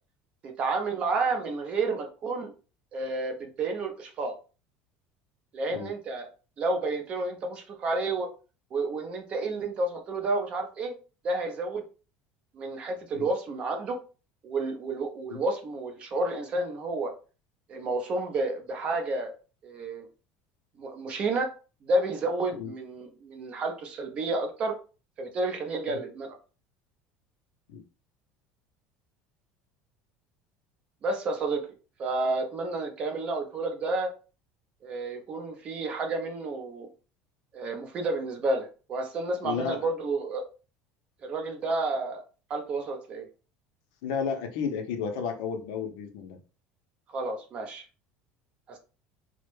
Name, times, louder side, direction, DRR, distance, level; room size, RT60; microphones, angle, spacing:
voice 1, 0.4-2.5 2.9-4.3 5.5-6.3 6.6-8.3 8.7-10.9 11.2-11.8 12.5-14.0 14.4-17.1 17.7-19.3 19.6-20.1 20.8-21.5 21.8-24.7 25.2-26.4 31.0-31.6 32.0-34.1 34.8-36.9 37.5-40.4 41.2-42.2 42.5-43.3 47.1-47.8 48.7-48.8, right 2 dB, 30° right, 4 dB, 0.5 m, -30 dB
voice 2, 39.4-39.9 44.0-46.4, left 6 dB, 80° left, 5 dB, 0.5 m, -32 dB
2.1 x 2.0 x 3.1 m, 0.35 s
cardioid pair, 170°, 4 cm